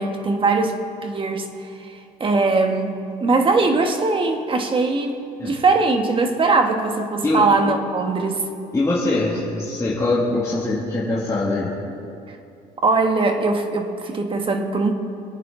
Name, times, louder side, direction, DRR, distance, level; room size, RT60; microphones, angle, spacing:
voice 1, 0.0-1.5 1.9-8.4 12.8-14.9, right 3 dB, 30° right, 4 dB, 1.4 m, -21 dB
voice 2, 8.7-11.7, left 2 dB, 20° left, -7 dB, 2.3 m, -22 dB
24.5 x 8.9 x 3.9 m, 2.6 s
cardioid pair, 110°, 17 cm